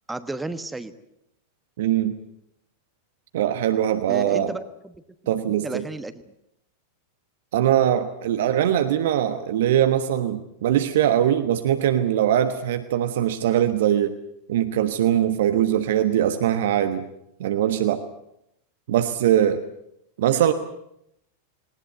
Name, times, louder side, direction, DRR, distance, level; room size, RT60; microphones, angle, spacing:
voice 1, 0.1-0.9 4.1-5.0 5.2-6.3, right 2 dB, 10° right, 13 dB, 1.3 m, -33 dB
voice 2, 1.8-2.2 3.3-4.5 5.3-5.8 7.5-14.1 14.5-17.1 17.4-18.0 18.9-19.6 20.2-20.5, right 11 dB, 55° right, 10 dB, 1.2 m, -21 dB
20.0 x 19.5 x 9.4 m, 0.78 s
figure-of-eight pair, 90°, 0 cm